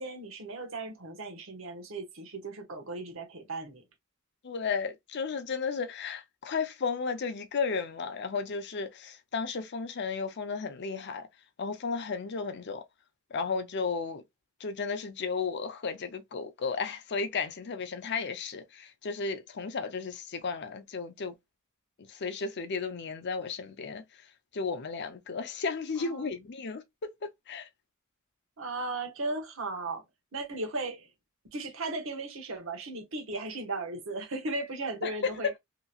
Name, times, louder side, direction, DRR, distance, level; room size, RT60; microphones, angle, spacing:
voice 1, 0.0-3.8 26.0-26.3 28.6-30.0 30.3-31.1 31.5-35.5, right 2 dB, 70° right, 0.9 m, -36 dB
voice 2, 4.4-11.3 11.6-12.8 13.3-14.2 14.6-21.3 22.0-24.0 24.5-27.7 35.0-35.1 35.4-35.5, left 5 dB, 55° left, 0.6 m, -34 dB
2.9 x 2.8 x 2.4 m
head